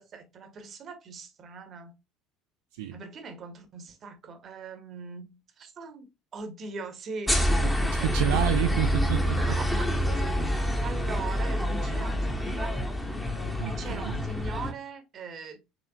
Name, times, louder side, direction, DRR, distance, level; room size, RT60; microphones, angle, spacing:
voice 1, 0.0-1.9 2.9-8.3 9.4-10.3 10.8-12.8 13.7-15.6, right 4 dB, 40° right, 1.1 m, -41 dB
sound 1, 7.3-14.7, equal, 10° left, 1.1 m, -27 dB
voice 2, 8.0-9.4 13.6-14.2, right 13 dB, 65° right, 0.4 m, -29 dB
6.0 x 3.1 x 2.3 m
figure-of-eight pair, 60°, 0 cm